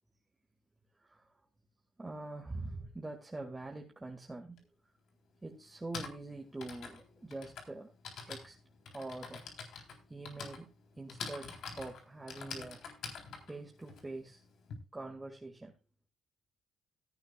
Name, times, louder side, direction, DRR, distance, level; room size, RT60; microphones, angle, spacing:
voice 1, 2.0-4.7 5.4-7.9 8.3-8.6 8.9-9.5 10.1-12.9 13.5-14.4 14.9-15.7, right 2 dB, 15° right, 1 dB, 2.2 m, -44 dB
Typing, 4.6-4.7 5.6-14.7, left 5 dB, 75° left, 3.8 m, -46 dB
17.0 x 10.5 x 2.4 m, 0.31 s
cardioid pair, 90°, 0 cm